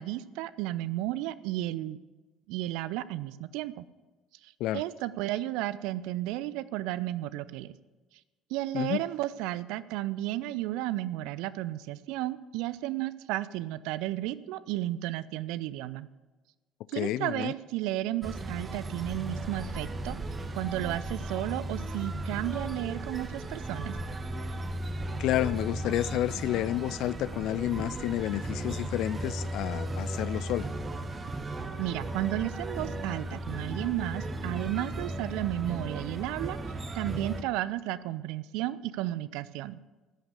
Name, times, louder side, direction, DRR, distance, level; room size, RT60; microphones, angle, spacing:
voice 1, 0.0-2.0 2.5-3.9 4.4-7.7 8.5-16.1 16.9-20.2 20.5-24.0 31.8-36.6 36.9-39.8, right 15 dB, 65° right, 0.5 m, -33 dB
voice 2, 17.0-17.5 25.2-30.7, left 14 dB, 60° left, 0.3 m, -30 dB
sound 1, 18.2-37.4, right 1 dB, 30° right, 1.1 m, -36 dB
14.5 x 5.8 x 8.1 m
figure-of-eight pair, 55°, 0 cm